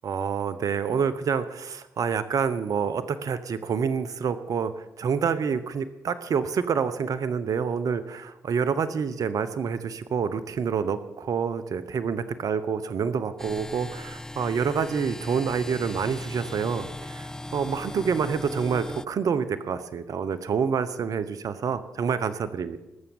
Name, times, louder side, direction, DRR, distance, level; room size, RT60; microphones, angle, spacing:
voice 1, 0.0-22.8, right 6 dB, 65° right, 13 dB, 0.9 m, -27 dB
sound 1, 13.4-19.1, left 1 dB, 10° left, 0.5 m, -38 dB
19.0 x 7.2 x 7.1 m, 0.93 s
supercardioid pair, 45°, 6 cm